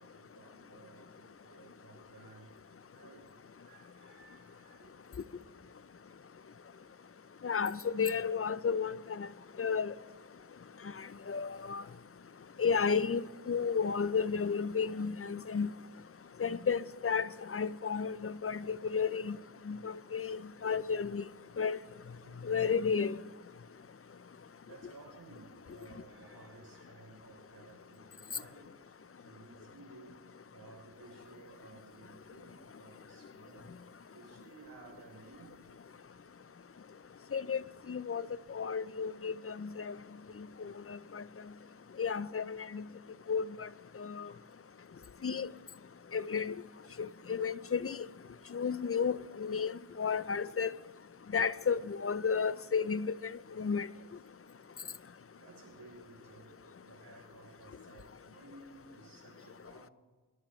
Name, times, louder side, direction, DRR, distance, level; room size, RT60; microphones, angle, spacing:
voice 1, 0.0-4.9 5.3-5.4 22.2-22.5 24.6-30.2 30.5-33.8 34.1-35.6 40.6-40.7 46.8-47.0 49.9-50.1 54.7-54.8 55.3-59.9, right 3 dB, 60° right, 3.9 m, -56 dB
voice 2, 7.4-9.3 9.6-9.9 11.3-11.8 12.6-13.2 13.5-15.7 16.4-19.4 19.7-21.2 21.6-21.8 22.4-23.2 37.3-37.6 37.9-38.2 38.5-40.0 40.9-41.2 42.0-42.8 43.3-43.7 44.0-44.3 45.2-45.5 46.1-46.5 47.0-48.0 48.5-50.7 51.3-53.9, left 6 dB, 30° left, 0.6 m, -32 dB
24.5 x 11.5 x 3.2 m
cardioid pair, 50°, 45 cm